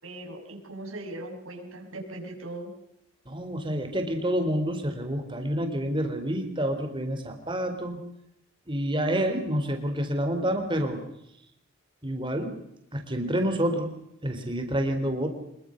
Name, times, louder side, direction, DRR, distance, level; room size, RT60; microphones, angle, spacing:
voice 1, 0.0-2.7, right 1 dB, 85° right, 1 dB, 6.2 m, -39 dB
voice 2, 3.3-8.0 8.7-11.0 12.0-12.5 12.9-13.9 14.2-15.3, equal, 25° right, 5 dB, 3.9 m, -28 dB
26.0 x 22.5 x 6.6 m, 0.79 s
head